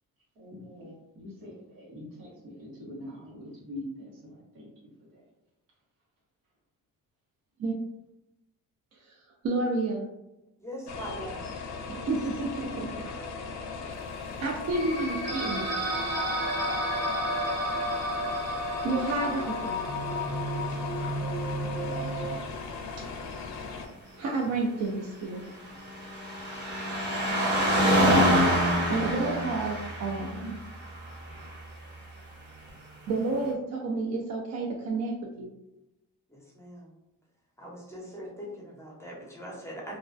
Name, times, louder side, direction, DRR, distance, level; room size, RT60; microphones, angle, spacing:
voice 1, 0.4-5.2, left 1 dB, 90° right, -4 dB, 1.0 m, -44 dB
voice 2, 9.4-10.1 11.9-12.9 13.8-14.1 14.4-15.7 18.8-19.8 24.2-25.5 28.9-30.6 33.1-35.5, right 3 dB, 50° right, -2 dB, 0.4 m, -30 dB
voice 3, 10.6-11.4 36.3-36.9 37.6-40.0, equal, 10° left, -3 dB, 0.6 m, -41 dB
sound 1, 10.9-23.9, left 4 dB, 55° left, 0.5 m, -38 dB
sound 2, 14.7-22.4, equal, 75° right, 1.3 m, -31 dB
sound 3, 25.0-31.7 32.7-32.8, equal, 30° right, 0.8 m, -26 dB
2.3 x 2.1 x 2.4 m, 0.93 s
cardioid pair, 90°, 34 cm